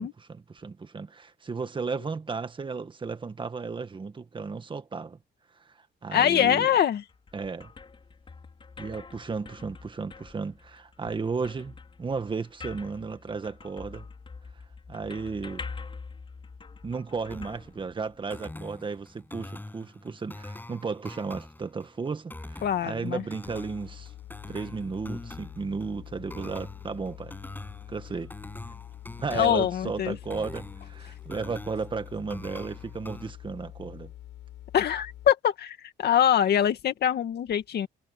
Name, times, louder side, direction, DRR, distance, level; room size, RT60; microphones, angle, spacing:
voice 1, 0.0-5.2 5.7-5.8 6.0-6.7 7.3-7.7 8.8-14.1 14.9-15.6 16.8-24.1 24.5-27.4 27.9-28.3 29.2-34.1, right 4 dB, 25° right, 1.7 m, -34 dB
voice 2, 6.1-7.0 22.6-23.2 29.3-30.2 34.7-37.9, left 10 dB, 60° left, 2.3 m, -24 dB
sound 1, 6.9-18.4, left 4 dB, 30° left, 5.6 m, -45 dB
sound 2, 17.3-33.3, left 2 dB, 10° left, 7.0 m, -44 dB
sound 3, 23.5-35.3, left 13 dB, 90° left, 5.5 m, -46 dB
cardioid pair, 130°, 19 cm